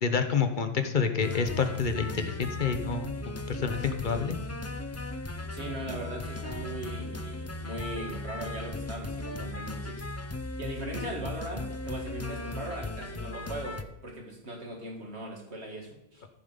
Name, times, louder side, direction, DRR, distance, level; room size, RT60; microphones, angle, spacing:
voice 1, 0.0-4.4, left 5 dB, 50° left, 8 dB, 1.0 m, -28 dB
sound 1, 1.2-13.8, left 2 dB, 20° left, 0.4 m, -37 dB
voice 2, 5.5-10.1 10.6-16.2, right 1 dB, 80° right, 0 dB, 2.6 m, -39 dB
14.5 x 5.6 x 5.2 m, 0.90 s
omnidirectional pair, 1.1 m